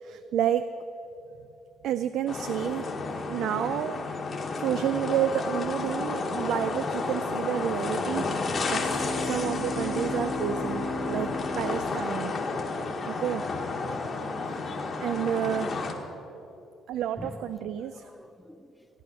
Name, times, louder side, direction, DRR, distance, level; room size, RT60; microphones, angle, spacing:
voice 1, 0.0-0.7 1.8-4.0 4.6-8.3 8.7-11.3 11.6-12.3 13.1-13.5 14.4-15.7 16.9-18.1, right 10 dB, 65° right, 12 dB, 0.4 m, -30 dB
sound 1, 2.3-15.9, left 3 dB, 30° left, 1.2 m, -32 dB
Bowed string instrument, 8.1-12.7, left 2 dB, 20° right, 0.9 m, -35 dB
voice 2, 13.8-14.1 15.8-15.9 16.2-16.3 17.2-17.5 17.8-18.9, left 1 dB, 5° left, 10 dB, 0.4 m, -45 dB
14.5 x 9.8 x 6.2 m, 2.9 s
cardioid pair, 165°, 0 cm